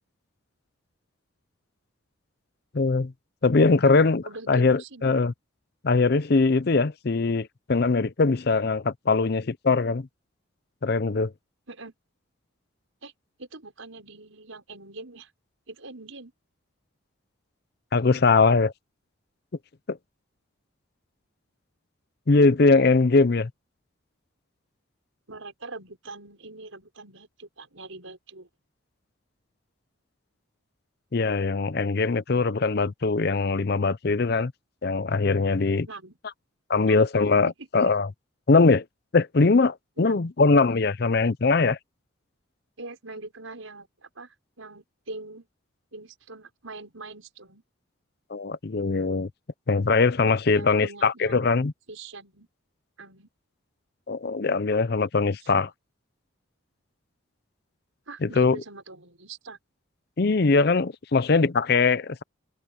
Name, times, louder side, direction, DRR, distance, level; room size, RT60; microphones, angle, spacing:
voice 1, 2.7-3.1 3.4-5.3 5.8-10.1 10.8-11.3 17.9-18.7 19.9-20.0 22.3-23.5 31.1-34.5 34.8-35.9 36.7-38.1 38.5-38.8 39.1-41.8 48.3-49.3 49.7-51.7 54.1-55.7 58.2-58.6 60.2-62.2, left 4 dB, 50° left, 0.6 m, -21 dB
voice 2, 3.6-3.9 4.2-5.1 11.7-11.9 13.0-13.1 13.4-15.3 15.7-16.3 25.3-28.5 35.6-36.2 36.8-37.1 37.6-37.7 40.0-40.2 42.8-45.5 45.9-47.6 50.5-51.5 51.9-52.5 53.0-53.3 55.5-55.6 58.1-59.6, right 3 dB, 80° right, 5.8 m, -43 dB
head